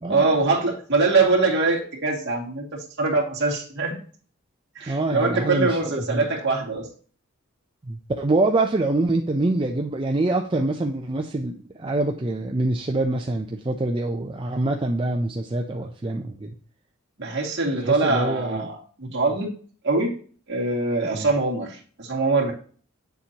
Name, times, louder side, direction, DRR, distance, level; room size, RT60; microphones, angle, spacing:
voice 1, 0.1-3.9 4.8-6.9 17.2-19.5 19.8-20.1 20.5-22.5, right 3 dB, 55° right, -1 dB, 2.3 m, -23 dB
voice 2, 4.9-6.2 7.9-16.5 17.7-18.7 21.1-21.3, right 2 dB, 25° right, 2 dB, 0.5 m, -25 dB
9.0 x 7.1 x 2.9 m, 0.43 s
head